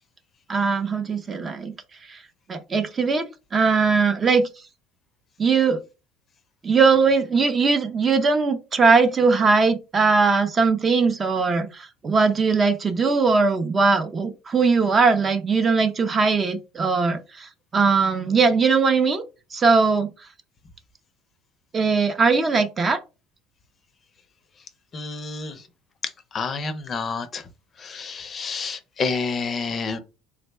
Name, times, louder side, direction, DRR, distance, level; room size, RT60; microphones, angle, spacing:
voice 1, 0.5-1.7 2.1-2.2 2.5-4.5 5.4-5.8 6.6-19.2 19.5-20.1 21.7-23.0, right 4 dB, 25° right, 0.5 m, -20 dB
voice 2, 24.9-25.6 26.3-27.4 27.8-30.0, left 4 dB, 30° left, 0.5 m, -29 dB
3.5 x 2.1 x 3.3 m
cardioid pair, 130°, 0 cm